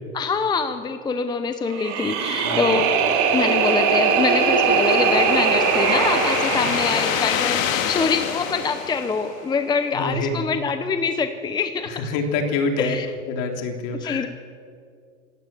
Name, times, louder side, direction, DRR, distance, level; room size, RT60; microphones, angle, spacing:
voice 1, 0.1-2.9 3.3-11.9 12.8-13.1 13.9-14.3, left 5 dB, 10° left, 9 dB, 0.7 m, -25 dB
sound 1, 1.7-8.8, right 6 dB, 45° right, 3.8 m, -22 dB
voice 2, 2.4-2.8 6.5-6.7 9.9-10.5 12.0-13.0 13.3-14.3, left 3 dB, 50° left, 4 dB, 3.4 m, -26 dB
sound 2, 3.2-9.7, left 10 dB, 90° left, 1.8 m, -28 dB
25.5 x 16.0 x 7.5 m, 2.3 s
supercardioid pair, 140°, 40 cm